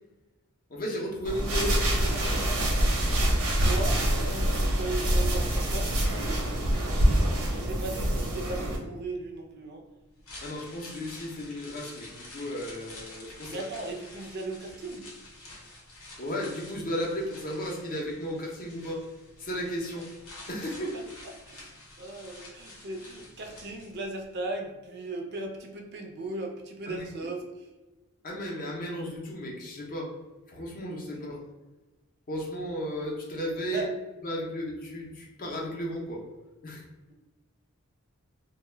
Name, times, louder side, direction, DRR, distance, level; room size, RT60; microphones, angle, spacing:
voice 1, 0.7-2.3 10.4-13.6 16.2-19.0 19.4-20.1 20.5-20.9 26.9-27.1 28.2-30.1 30.5-31.5 32.3-33.8 34.2-36.2 36.6-36.8, equal, 40° left, -1 dB, 0.5 m, -34 dB
sound 1, 1.2-8.8, right 1 dB, 85° right, 0.7 m, -25 dB
voice 2, 3.4-6.0 6.2-9.8 13.4-15.1 20.9-21.0 21.5-27.7 33.7-33.9 37.1-37.2, right 2 dB, 50° right, 3 dB, 0.4 m, -37 dB
sound 2, 10.0-24.2 24.5-24.6, left 2 dB, 80° left, 0.8 m, -48 dB
2.1 x 2.1 x 3.2 m, 1.1 s
head